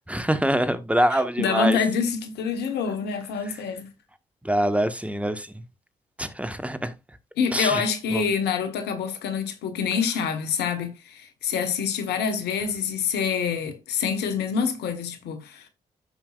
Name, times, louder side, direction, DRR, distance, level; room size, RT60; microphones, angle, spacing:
voice 1, 0.1-1.8 4.4-5.6 6.2-6.9 7.5-7.8 8.1-8.2, right 1 dB, 5° right, 1.3 m, -24 dB
voice 2, 1.1-3.9 7.4-15.7, left 6 dB, 75° left, 1.3 m, -26 dB
14.5 x 5.5 x 2.4 m
hypercardioid pair, 40°, 17 cm